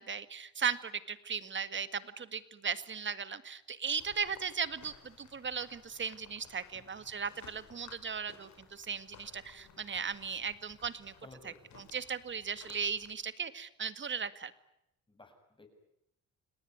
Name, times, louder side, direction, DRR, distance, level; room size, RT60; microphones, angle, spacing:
voice 1, 0.0-11.1 11.9-14.5, right 6 dB, 40° right, 13 dB, 1.9 m, -37 dB
sound 1, 4.0-13.2, left 6 dB, 65° left, 5.5 m, -58 dB
voice 2, 11.2-11.9 15.1-15.7, left 2 dB, 15° left, 5 dB, 7.4 m, -55 dB
29.0 x 19.0 x 9.6 m, 0.83 s
cardioid pair, 90°, 30 cm